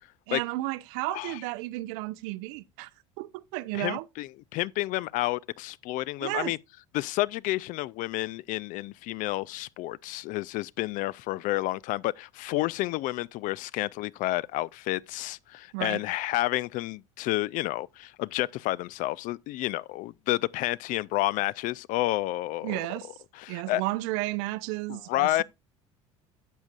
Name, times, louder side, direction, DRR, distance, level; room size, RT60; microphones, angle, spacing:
voice 1, 0.3-2.9 3.2-4.1 6.2-6.5 15.7-16.0 22.6-23.1 23.5-25.4, right 19 dB, 65° right, 0.6 m, -33 dB
voice 2, 3.7-6.6 6.9-22.8 23.4-23.8 24.9-25.4, left 17 dB, 50° left, 0.4 m, -30 dB
11.5 x 7.3 x 2.4 m
hypercardioid pair, 65°, 17 cm